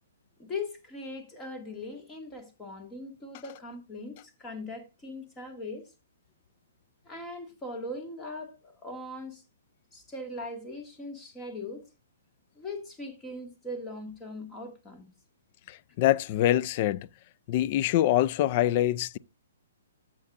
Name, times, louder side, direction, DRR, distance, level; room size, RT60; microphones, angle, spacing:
voice 1, 0.4-5.8 7.1-9.4 9.9-11.8 12.6-15.1, left 2 dB, 15° left, 1.9 m, -40 dB
voice 2, 15.7-17.1 17.5-19.2, left 13 dB, 40° left, 0.3 m, -25 dB
12.5 x 7.5 x 2.5 m
hypercardioid pair, 150°, 0 cm